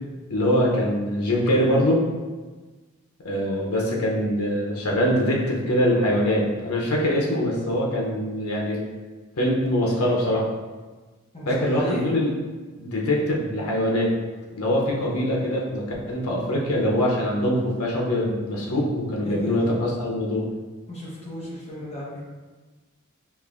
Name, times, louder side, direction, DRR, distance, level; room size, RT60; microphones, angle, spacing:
voice 1, 0.3-2.0 3.2-8.8 9.4-10.5 11.5-12.3 12.8-14.1 14.5-20.4, equal, 90° left, -2 dB, 0.8 m, -23 dB
voice 2, 11.3-12.1 19.2-19.8 20.9-22.2, equal, 30° left, -7 dB, 1.0 m, -34 dB
5.2 x 2.7 x 2.5 m, 1.3 s
head